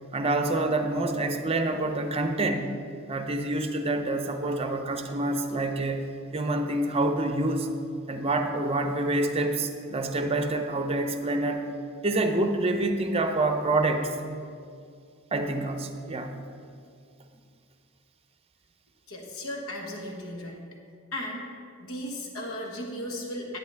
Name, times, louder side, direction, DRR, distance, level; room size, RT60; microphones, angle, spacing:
voice 1, 0.1-2.7 3.1-6.1 6.3-7.7 8.1-11.7 12.0-14.1 15.3-16.3, right 2 dB, 30° right, 6 dB, 0.7 m, -27 dB
voice 2, 19.1-20.6 21.1-21.5 21.8-23.6, left 1 dB, 75° left, 1 dB, 1.4 m, -36 dB
11.0 x 8.9 x 3.5 m, 2.3 s
head